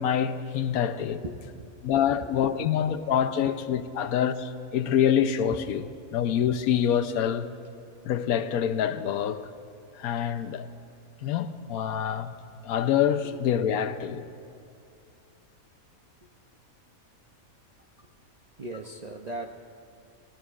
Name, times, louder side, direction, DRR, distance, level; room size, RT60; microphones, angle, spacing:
voice 1, 0.0-1.2 1.8-5.9 6.1-7.5 8.0-9.5 10.0-10.7 11.2-12.3 12.6-14.3, left 9 dB, 90° left, 1.1 m, -26 dB
voice 2, 1.2-1.7 2.2-2.5 3.3-3.5 18.0-18.1 18.6-19.6, right 2 dB, 55° right, 0.4 m, -39 dB
26.0 x 18.5 x 2.4 m
omnidirectional pair, 1.5 m